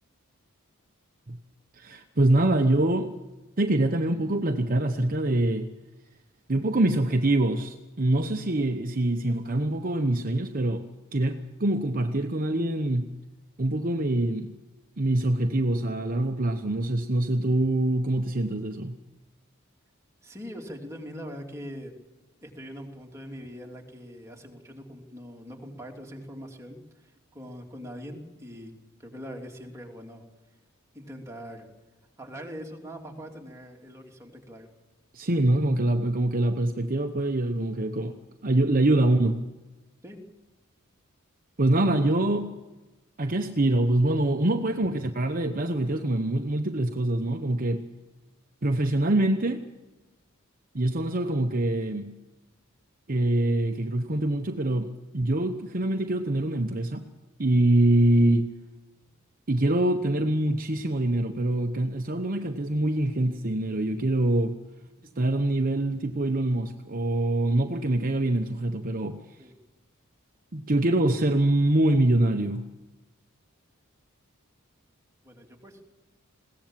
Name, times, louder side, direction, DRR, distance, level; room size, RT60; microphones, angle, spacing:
voice 1, 1.8-3.1 3.6-5.7 6.5-10.8 11.1-13.1 13.6-14.5 15.0-19.0 35.1-38.2 38.4-39.4 41.6-42.5 43.2-47.9 48.6-49.6 50.7-52.1 53.1-57.0 57.4-58.5 59.5-64.6 65.2-69.2 70.5-72.7, right 1 dB, 40° right, 1.0 m, -24 dB
voice 2, 20.2-21.9 22.4-28.7 29.0-30.2 30.9-31.7 32.2-34.7 40.0-40.2 69.4-69.5 75.2-75.8, equal, 15° right, 3.0 m, -42 dB
21.5 x 17.5 x 7.5 m
head